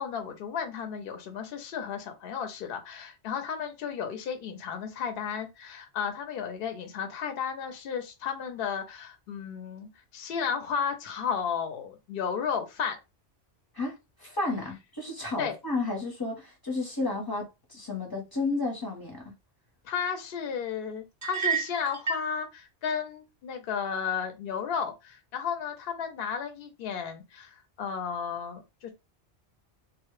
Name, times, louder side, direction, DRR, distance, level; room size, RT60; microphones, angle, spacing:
voice 1, 0.0-13.0 15.4-15.6 19.8-28.9, left 7 dB, 65° left, 0.7 m, -33 dB
voice 2, 14.2-19.3, left 3 dB, 25° left, 0.6 m, -32 dB
sound 1, 21.2-22.3, right 6 dB, 20° right, 0.6 m, -30 dB
2.1 x 2.0 x 3.0 m
omnidirectional pair, 1.2 m